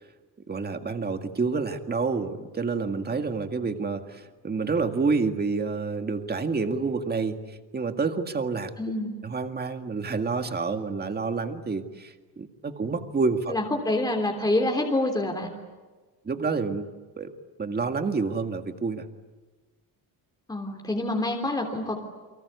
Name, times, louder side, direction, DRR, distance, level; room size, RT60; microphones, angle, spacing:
voice 1, 0.5-7.4 7.7-8.7 9.2-13.6 16.3-16.9 17.2-17.3 17.6-19.0, right 4 dB, 25° right, 7 dB, 1.9 m, -28 dB
voice 2, 8.8-9.2 13.5-15.5 20.5-22.0, left 1 dB, 10° left, 2 dB, 3.4 m, -27 dB
30.0 x 24.0 x 8.3 m, 1.3 s
cardioid pair, 160°, 40 cm